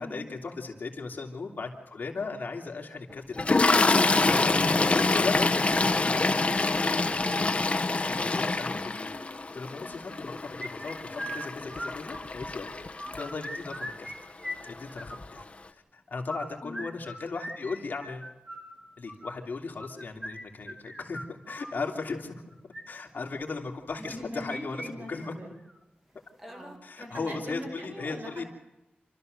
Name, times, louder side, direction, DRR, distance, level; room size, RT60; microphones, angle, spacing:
voice 1, 0.0-3.5 4.9-7.2 8.1-14.1 14.6-15.4 15.7-18.3 19.0-22.3 22.9-25.3 26.8-28.4, left 4 dB, 60° left, 1 dB, 3.0 m, -37 dB
Toilet flush, 3.4-13.7 14.6-14.8 15.0-15.2, left 3 dB, 35° left, 1.2 m, -26 dB
sound 1, 10.6-12.5 12.8-14.1 14.4-15.4 16.1-21.8 22.5-22.8 24.1-24.9 25.2-25.3 25.7-25.8 26.4-26.8, equal, 5° right, 2.2 m, -40 dB
voice 2, 23.9-25.6 26.5-28.5, equal, 60° right, 2 dB, 6.9 m, -42 dB
28.0 x 13.5 x 6.7 m, 0.99 s
wide cardioid pair, 110°, 4 cm